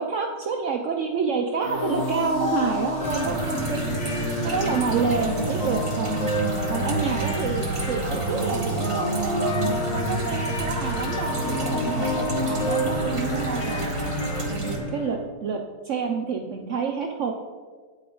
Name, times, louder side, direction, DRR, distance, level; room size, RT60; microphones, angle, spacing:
voice 1, 0.0-3.9 4.4-6.3 6.7-9.5 9.9-14.1 14.5-17.3, right 5 dB, 70° right, 3 dB, 0.7 m, -28 dB
sound 1, 1.6-15.1, equal, 90° left, 2.2 m, -28 dB
sound 2, 3.0-14.8, right 2 dB, 25° right, 0.8 m, -32 dB
8.5 x 8.5 x 3.8 m, 1.5 s
omnidirectional pair, 1.9 m